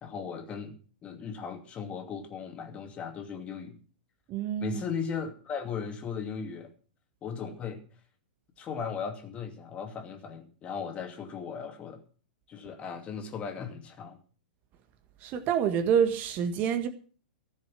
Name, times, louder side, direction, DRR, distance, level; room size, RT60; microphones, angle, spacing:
voice 1, 0.0-0.8 1.0-3.8 4.6-6.7 7.2-7.8 8.6-12.0 12.5-14.2, left 6 dB, 25° left, 2.6 m, -37 dB
voice 2, 4.3-4.8 15.2-16.9, right 8 dB, 35° right, 1.6 m, -27 dB
15.0 x 7.4 x 7.6 m
figure-of-eight pair, 105°, 5 cm